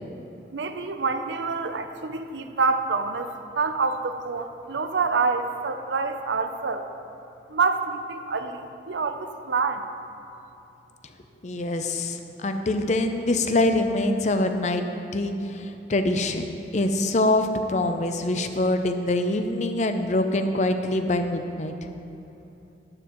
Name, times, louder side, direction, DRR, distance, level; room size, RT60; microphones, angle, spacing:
voice 1, 0.5-6.9 7.5-9.9, right 4 dB, 90° right, 8 dB, 0.6 m, -27 dB
voice 2, 11.4-14.8 15.1-16.5 16.7-21.7, left 2 dB, 40° left, 7 dB, 0.6 m, -24 dB
11.5 x 11.5 x 3.1 m, 2.8 s
head